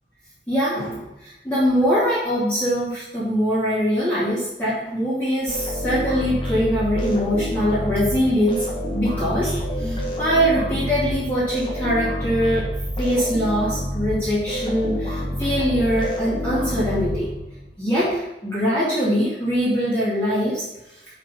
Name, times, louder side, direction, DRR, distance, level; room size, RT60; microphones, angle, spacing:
voice 1, 0.5-12.7 13.0-17.3 17.8-20.7, equal, 10° left, -11 dB, 2.5 m, -22 dB
sound 1, 5.5-17.7, equal, 25° left, 1.7 m, -28 dB
6.3 x 5.6 x 5.4 m, 0.93 s
head